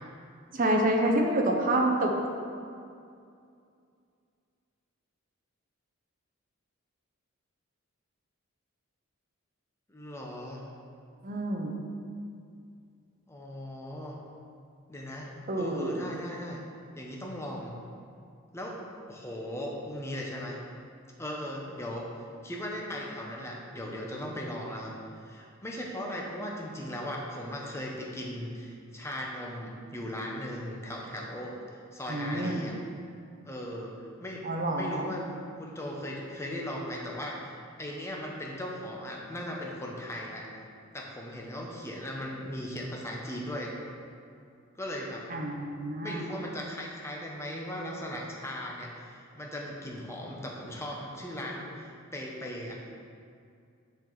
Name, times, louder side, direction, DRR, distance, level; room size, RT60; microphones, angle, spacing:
voice 1, 0.5-2.3 11.2-11.7 15.5-16.0 32.1-32.6 34.4-35.1 45.3-46.2, right 1 dB, 40° right, 1 dB, 0.7 m, -27 dB
voice 2, 9.9-10.6 13.3-14.2 14.9-16.6 17.0-17.7 18.5-18.8 19.1-20.6 21.2-22.0 22.4-25.0 25.2-32.8 33.4-35.2 35.6-37.5 37.8-40.5 40.9-43.7 44.8-45.3 46.0-52.7, equal, 10° left, -1 dB, 0.7 m, -38 dB
7.2 x 4.6 x 3.9 m, 2.4 s
head